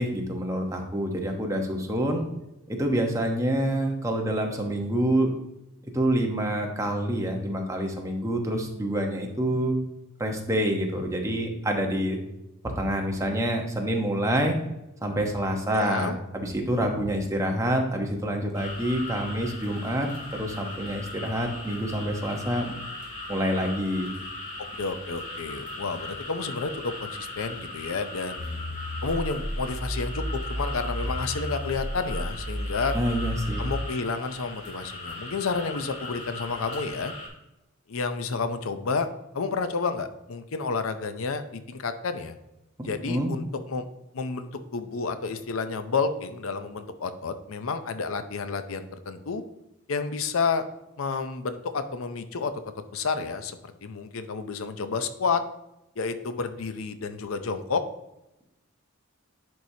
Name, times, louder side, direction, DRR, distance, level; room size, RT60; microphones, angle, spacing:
voice 1, 0.0-2.2 2.7-5.3 5.8-9.8 10.2-12.2 12.6-14.6 15.0-22.8 23.3-24.1 32.9-33.7 42.8-43.4, right 1 dB, 15° right, 2 dB, 1.0 m, -27 dB
voice 2, 15.7-16.2 24.8-33.0 33.6-37.1 37.9-39.1 39.3-42.3 42.8-43.8 44.1-49.4 49.9-50.7 51.0-52.5 52.9-55.4 56.0-57.8, left 4 dB, 75° left, 10 dB, 0.6 m, -30 dB
sound 1, 18.6-37.3, left 2 dB, 35° left, 1.9 m, -39 dB
sound 2, 28.4-33.8, equal, 15° left, 0.7 m, -32 dB
10.5 x 4.7 x 2.8 m, 0.92 s
head